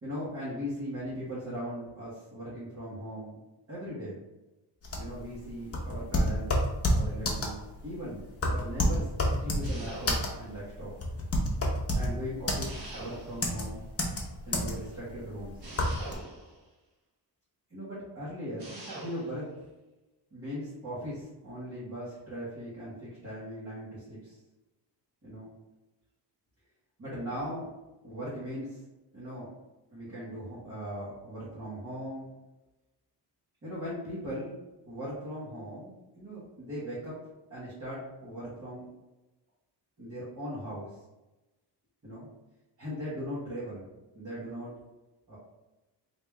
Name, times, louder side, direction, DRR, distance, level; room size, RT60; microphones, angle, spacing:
voice 1, 0.0-3.4 3.7-4.2 4.9-6.6 6.9-10.9 11.9-13.8 14.5-15.6 17.7-19.6 20.3-24.4 25.2-25.5 27.0-27.7 28.0-28.8 29.1-29.5 29.9-32.3 33.6-34.5 34.8-37.2 37.5-38.9 40.0-41.0 42.0-42.3 42.8-44.7 45.3-45.4, equal, 35° right, -10 dB, 1.3 m, -39 dB
sound 1, 4.8-16.1, left 1 dB, 35° left, 0.8 m, -29 dB
sound 2, 9.6-10.5 12.6-13.6 15.6-16.6 18.6-19.4, right 2 dB, 60° right, 1.1 m, -44 dB
3.5 x 2.8 x 3.3 m, 1.1 s
wide cardioid pair, 120°, 42 cm